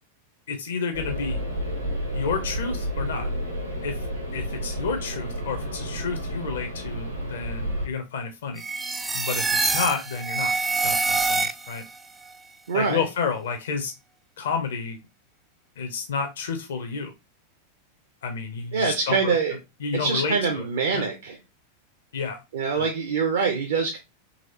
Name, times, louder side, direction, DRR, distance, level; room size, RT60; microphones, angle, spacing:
voice 1, 0.5-1.4 2.1-3.3 3.8-4.0 4.3-8.6 9.1-10.5 10.8-11.8 12.7-13.9 14.4-15.0 15.8-17.1 18.2-19.4 19.8-20.7 20.9-21.1 22.1-22.4 22.7-22.9, left 5 dB, 60° left, 6 dB, 0.6 m, -30 dB
sound 1, 0.9-7.9, equal, 90° right, 1.1 m, -31 dB
sound 2, 8.6-11.9, right 4 dB, 10° right, 0.3 m, -25 dB
voice 2, 12.7-13.0 18.7-19.6 19.9-21.4 22.5-24.0, right 5 dB, 60° right, 4 dB, 0.6 m, -24 dB
4.0 x 2.9 x 2.7 m, 0.24 s
figure-of-eight pair, 90°, 0 cm